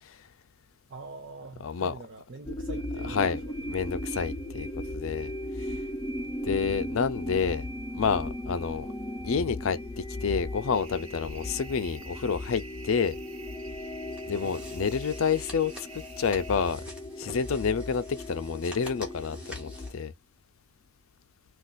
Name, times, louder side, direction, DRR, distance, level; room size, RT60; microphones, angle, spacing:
voice 1, 0.9-3.6 14.3-14.6, right 3 dB, 50° right, 0.5 m, -44 dB
voice 2, 1.6-1.9 3.1-3.4 3.7-4.7 4.9-5.3 5.6-5.8 6.4-7.7 7.9-8.9 9.2-13.2 14.3-16.8 17.2-20.1, left 6 dB, 70° left, 0.5 m, -29 dB
sound 1, 2.5-19.9, left 1 dB, 15° left, 0.5 m, -37 dB
sound 2, 10.7-16.7, right 5 dB, 70° right, 0.9 m, -49 dB
sound 3, 14.1-20.0, equal, 5° right, 0.8 m, -48 dB
2.5 x 2.4 x 3.8 m
head